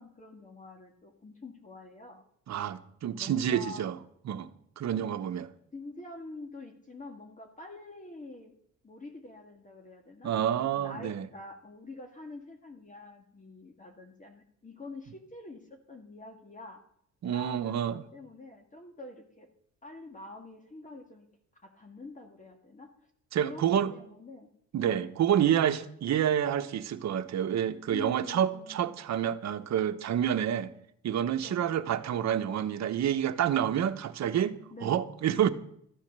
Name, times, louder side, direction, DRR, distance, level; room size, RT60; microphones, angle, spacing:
voice 1, 0.0-2.2 3.1-3.9 5.0-5.1 5.7-8.5 8.8-10.3 10.6-16.8 17.3-19.5 19.8-21.3 21.6-22.9 23.4-24.5 24.9-25.2 27.9-28.9 31.4-31.8 34.7-35.0, left 3 dB, 25° left, 2.1 m, -46 dB
voice 2, 2.5-4.0 4.2-4.5 4.8-5.5 10.2-11.3 17.2-18.0 23.3-23.9 24.7-30.7 31.0-34.6 34.8-35.5, right 9 dB, 65° right, 1.1 m, -28 dB
14.0 x 9.0 x 6.8 m
cardioid pair, 90°, 30 cm